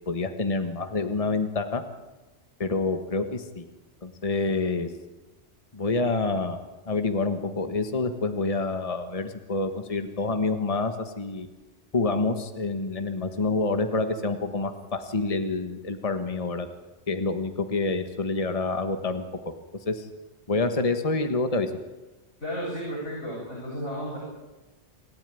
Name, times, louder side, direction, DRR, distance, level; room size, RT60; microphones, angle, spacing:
voice 1, 0.1-1.8 2.6-3.6 4.0-4.9 5.7-6.6 6.9-11.5 11.9-16.7 17.1-19.5 19.9-20.1 20.5-21.7, left 3 dB, 30° left, 8 dB, 1.5 m, -27 dB
voice 2, 22.4-24.2, equal, 80° left, -5 dB, 8.2 m, -33 dB
28.0 x 13.5 x 9.3 m, 1.1 s
omnidirectional pair, 1.2 m